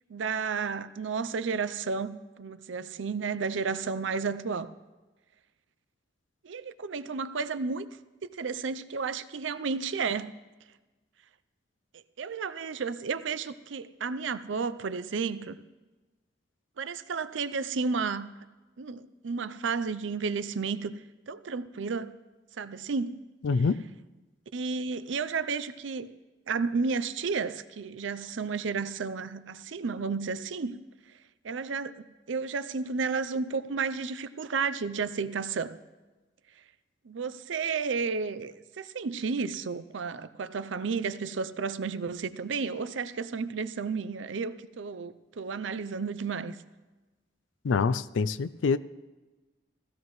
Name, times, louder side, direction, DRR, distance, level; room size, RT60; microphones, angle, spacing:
voice 1, 0.1-4.7 6.4-7.9 8.2-10.3 11.9-15.6 16.8-18.3 18.8-21.0 21.3-22.1 22.6-23.2 24.5-26.1 26.5-30.8 31.4-35.8 37.0-46.6, right 5 dB, 90° right, 0.5 m, -32 dB
voice 2, 23.4-23.8 47.6-48.8, left 4 dB, 90° left, 0.4 m, -25 dB
15.5 x 15.5 x 3.1 m
head